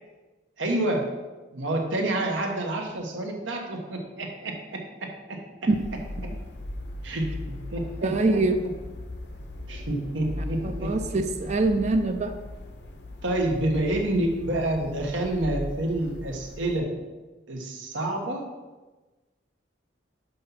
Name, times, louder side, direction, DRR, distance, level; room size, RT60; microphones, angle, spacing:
voice 1, 0.6-1.0 1.5-5.4 6.2-6.3 7.0-8.4 9.7-11.2 13.2-16.9 17.5-18.4, right 1 dB, 80° right, 1 dB, 1.1 m, -28 dB
sound 1, 5.7-16.8, left 1 dB, 60° left, 0.7 m, -38 dB
voice 2, 8.0-8.6 10.6-12.3, right 2 dB, 35° right, 6 dB, 0.4 m, -24 dB
5.7 x 5.4 x 5.6 m, 1.2 s
head